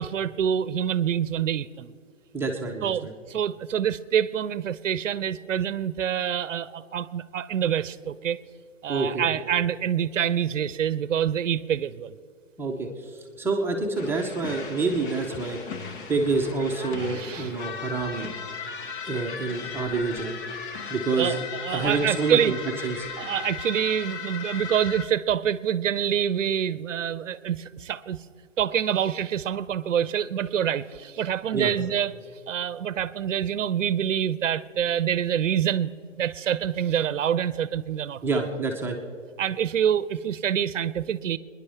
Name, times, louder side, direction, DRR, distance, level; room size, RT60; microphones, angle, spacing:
voice 1, 0.0-1.9 2.8-8.4 8.8-12.2 16.9-17.5 21.1-22.5 23.2-28.2 28.6-32.1 32.5-35.9 36.2-38.5 39.4-41.4, right 9 dB, 80° right, 17 dB, 0.6 m, -26 dB
voice 2, 2.3-3.1 8.9-9.2 12.6-15.6 16.1-18.4 19.0-20.3 20.9-21.4 21.7-22.6 22.8-23.1 31.5-31.7 38.2-39.0, right 3 dB, 5° right, 0 dB, 0.8 m, -27 dB
sound 1, 14.0-25.1, left 6 dB, 45° left, 1.2 m, -37 dB
25.5 x 10.5 x 3.5 m, 2.2 s
hypercardioid pair, 135°, 37 cm